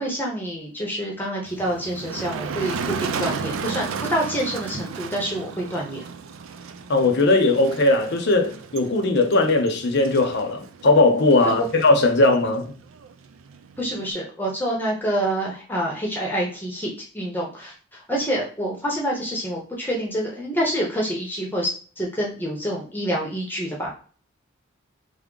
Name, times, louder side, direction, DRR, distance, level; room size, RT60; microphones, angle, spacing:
voice 1, 0.0-6.0 11.4-11.7 13.8-21.7 22.0-24.0, equal, 10° left, 0.8 m, -27 dB
Motor vehicle (road), 1.5-14.1, right 5 dB, 85° right, 0.4 m, -34 dB
voice 2, 6.9-12.7, left 2 dB, 60° left, 0.7 m, -19 dB
3.5 x 2.1 x 3.7 m
head